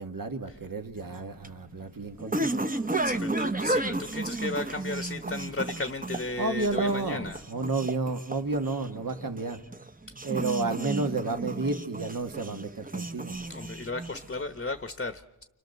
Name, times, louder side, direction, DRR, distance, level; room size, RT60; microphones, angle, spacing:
voice 1, 0.0-2.6 6.4-7.2 7.5-9.6 10.2-13.4, right 3 dB, 55° right, 6 dB, 1.7 m, -31 dB
sound 1, 1.0-14.5, right 2 dB, 20° right, 1.1 m, -33 dB
voice 2, 3.0-7.4 13.5-15.4, left 3 dB, 30° left, 9 dB, 1.0 m, -35 dB
30.0 x 25.5 x 6.7 m, 0.95 s
wide cardioid pair, 80°, 39 cm